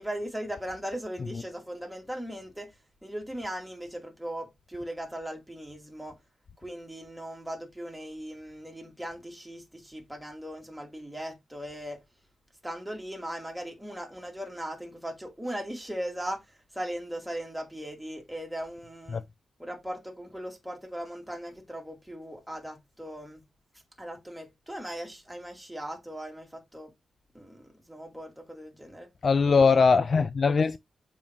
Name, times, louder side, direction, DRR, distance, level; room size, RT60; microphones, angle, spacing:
voice 1, 0.0-6.1 6.6-12.0 12.6-19.2 19.6-23.4 24.0-26.9 27.3-29.1, equal, ahead, 2.4 m, -38 dB
voice 2, 29.2-30.8, left 5 dB, 40° left, 0.3 m, -21 dB
7.0 x 5.3 x 3.1 m
wide cardioid pair, 150°, 0 cm